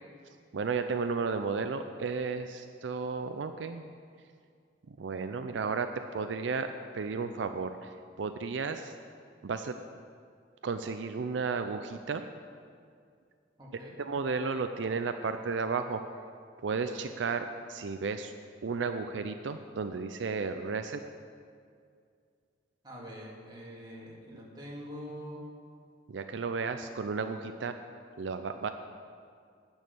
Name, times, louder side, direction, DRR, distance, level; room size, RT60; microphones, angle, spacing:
voice 1, 0.5-3.9 4.9-8.9 9.4-9.8 10.6-12.2 13.7-16.0 16.6-18.3 18.6-21.0 26.1-27.7 28.2-28.7, right 4 dB, 80° right, 8 dB, 0.4 m, -33 dB
voice 2, 13.6-13.9 22.8-25.4, equal, 25° right, -5 dB, 2.2 m, -44 dB
9.3 x 6.4 x 8.3 m, 2.2 s
head